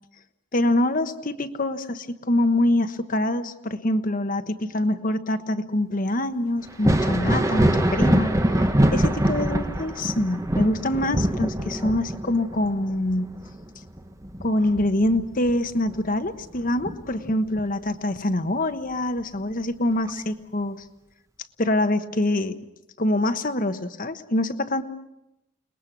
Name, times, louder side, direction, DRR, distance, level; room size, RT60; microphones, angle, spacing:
voice 1, 0.5-8.3 8.9-13.3 14.4-20.8 21.6-22.6 23.0-24.8, left 1 dB, 40° left, 9 dB, 1.2 m, -25 dB
Thunder, 6.7-16.0 16.4-17.6 19.2-19.3 20.1-20.2, right 1 dB, 15° right, 1.1 m, -24 dB
29.5 x 21.0 x 6.1 m, 0.88 s
head